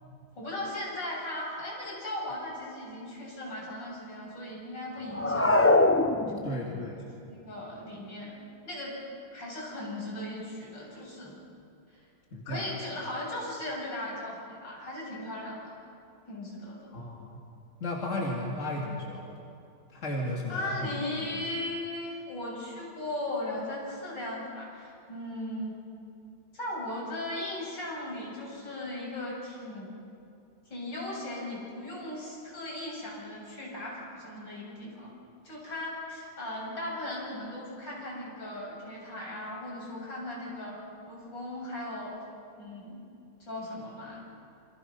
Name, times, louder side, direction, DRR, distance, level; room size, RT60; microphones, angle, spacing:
voice 1, 0.3-5.7 6.3-6.7 7.0-9.0 9.3-11.4 11.9-12.0 12.5-15.8 16.3-16.9 20.5-25.7 26.5-29.9 30.7-35.1 35.4-40.8 41.1-42.1 42.6-43.0 43.4-44.2, left 1 dB, 80° left, -4 dB, 8.1 m, -37 dB
sound 1, 5.1-6.8, left 2 dB, 20° left, 0.3 m, -22 dB
voice 2, 6.4-7.1 12.3-12.7 16.9-17.4 17.8-19.3 19.9-20.9 21.2-21.4, left 1 dB, 40° left, -2 dB, 3.1 m, -34 dB
28.0 x 26.5 x 5.6 m, 2.5 s
omnidirectional pair, 1.9 m